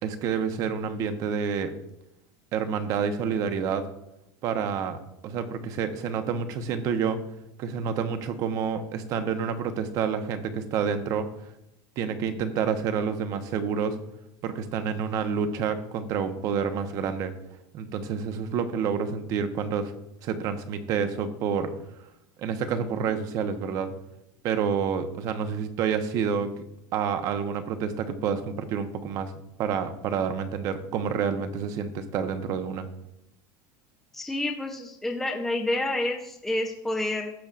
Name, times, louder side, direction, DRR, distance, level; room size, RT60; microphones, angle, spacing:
voice 1, 0.0-1.7 2.5-3.8 4.4-5.0 5.2-7.2 7.6-11.3 12.0-14.0 14.4-17.3 17.7-19.9 20.2-21.7 22.4-23.9 24.4-26.5 26.9-29.3 29.6-32.9, right 6 dB, 45° right, 8 dB, 1.0 m, -28 dB
voice 2, 34.1-37.3, left 1 dB, 5° left, 1 dB, 0.7 m, -29 dB
16.5 x 6.9 x 2.5 m, 0.84 s
supercardioid pair, 150°, 9 cm